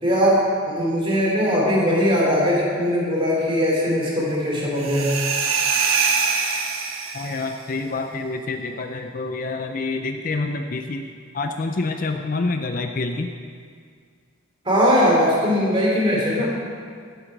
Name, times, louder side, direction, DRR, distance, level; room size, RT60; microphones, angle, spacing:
voice 1, 0.0-5.1 14.6-16.5, equal, 25° right, -4 dB, 2.8 m, -20 dB
sound 1, 4.8-7.5, right 5 dB, 85° right, 1.1 m, -23 dB
voice 2, 7.1-13.3, left 3 dB, 40° left, 5 dB, 0.5 m, -27 dB
14.5 x 8.0 x 4.6 m, 2.1 s
head